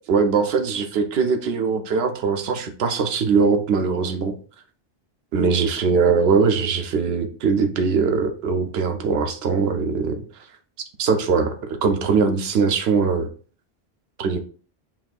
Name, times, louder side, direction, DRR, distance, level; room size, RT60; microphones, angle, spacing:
voice 1, 0.1-4.3 5.3-10.2 11.0-13.3 14.2-14.4, right 5 dB, 75° right, 7 dB, 0.8 m, -21 dB
5.8 x 2.5 x 2.3 m, 0.40 s
omnidirectional pair, 1.1 m